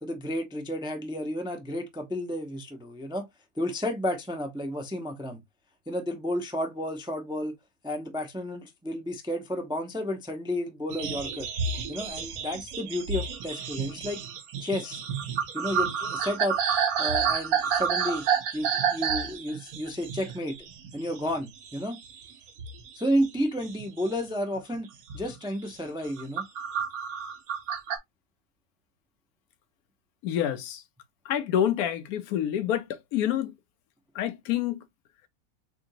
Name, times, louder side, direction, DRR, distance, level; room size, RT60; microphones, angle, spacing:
voice 1, 0.0-3.3 3.6-5.4 5.9-7.5 7.8-11.5 11.9-14.2 14.6-15.0 15.5-16.6 17.0-18.2 18.5-20.6 20.9-22.0 22.9-24.9 25.1-26.4, equal, 5° right, 0.3 m, -31 dB
sound 1, 10.9-21.4 21.6-22.3 22.6-24.1 24.6-24.8 25.1-25.3 25.9-28.0, right 7 dB, 75° right, 1.2 m, -30 dB
voice 2, 30.2-30.8 31.2-33.5 34.1-34.8, left 10 dB, 90° left, 1.1 m, -27 dB
3.7 x 3.4 x 2.6 m
omnidirectional pair, 1.5 m